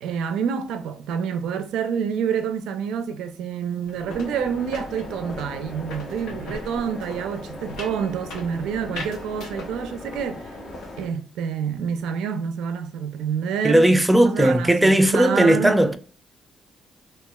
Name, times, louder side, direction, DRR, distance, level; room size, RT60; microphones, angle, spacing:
voice 1, 0.0-10.5 11.0-13.9 14.1-15.8, right 7 dB, 85° right, 0.3 m, -28 dB
sound 1, 3.8-10.3 10.6-11.1, left 2 dB, 85° left, 0.6 m, -40 dB
sound 2, 4.1-11.1, left 1 dB, 40° left, 0.7 m, -39 dB
voice 2, 13.6-16.0, right 1 dB, 5° right, 0.3 m, -17 dB
2.8 x 2.3 x 2.2 m
cardioid pair, 90°, 0 cm